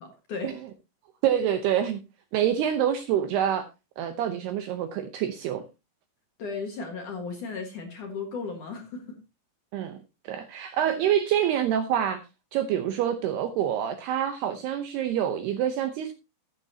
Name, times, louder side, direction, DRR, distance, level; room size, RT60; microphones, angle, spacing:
voice 1, 0.0-0.6 6.4-9.2, left 4 dB, 60° left, 2.3 m, -35 dB
voice 2, 1.2-2.0 2.3-3.7 4.0-5.6 9.7-12.2 12.5-16.1, right 10 dB, 75° right, 2.4 m, -26 dB
14.0 x 10.0 x 2.8 m
omnidirectional pair, 5.6 m